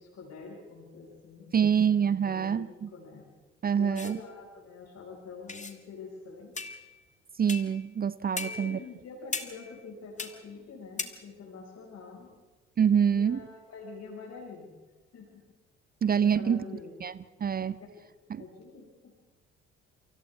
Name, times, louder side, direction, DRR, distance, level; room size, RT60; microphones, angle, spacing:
voice 1, 0.0-3.3 3.7-6.7 8.4-12.3 13.1-14.8 15.1-15.4 16.2-16.9 17.8-17.9 18.4-19.1, left 4 dB, 45° left, -2 dB, 6.0 m, -46 dB
voice 2, 1.5-2.9 3.6-4.2 7.4-8.8 12.8-13.4 16.0-16.6 17.0-17.1 17.4-17.8 18.3-18.4, right 7 dB, 25° right, 18 dB, 0.6 m, -26 dB
sound 1, 4.0-4.2 5.5-5.8 6.5-7.0 7.5-7.8 8.4-8.9 9.3-9.8 10.2-10.4 11.0-11.1, left 3 dB, 20° left, 1.8 m, -37 dB
29.0 x 25.0 x 3.7 m, 1.2 s
figure-of-eight pair, 45°, 35 cm